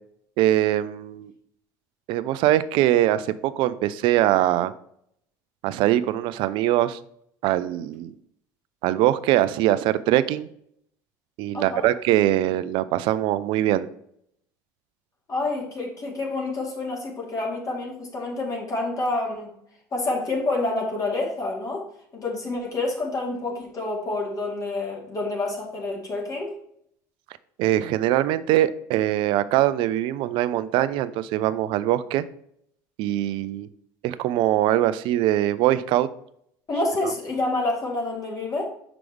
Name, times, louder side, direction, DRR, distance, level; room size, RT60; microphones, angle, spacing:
voice 1, 0.4-1.3 2.1-4.7 5.6-7.0 7.4-8.1 8.8-10.5 11.4-13.9 27.6-32.2 33.0-33.7 34.0-36.1, right 13 dB, 65° right, 14 dB, 0.5 m, -22 dB
voice 2, 11.5-11.9 15.3-19.5 19.9-21.8 22.1-26.5 36.7-38.6, left 2 dB, 40° left, -2 dB, 2.2 m, -28 dB
6.0 x 4.9 x 3.4 m, 0.70 s
hypercardioid pair, 80°, 9 cm